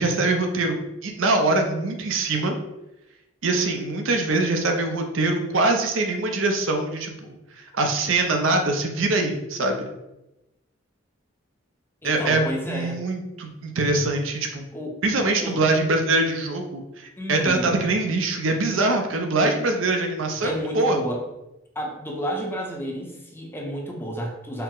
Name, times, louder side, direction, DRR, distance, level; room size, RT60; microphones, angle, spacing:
voice 1, 0.0-2.6 3.4-7.3 7.6-9.8 12.0-14.6 15.0-21.0, right 2 dB, 80° right, 4 dB, 0.6 m, -23 dB
voice 2, 12.0-13.0 14.7-15.0 15.4-15.6 17.2-17.7 20.4-21.2 21.8-24.6, equal, 10° left, -1 dB, 0.6 m, -31 dB
4.5 x 2.0 x 3.7 m, 0.95 s
head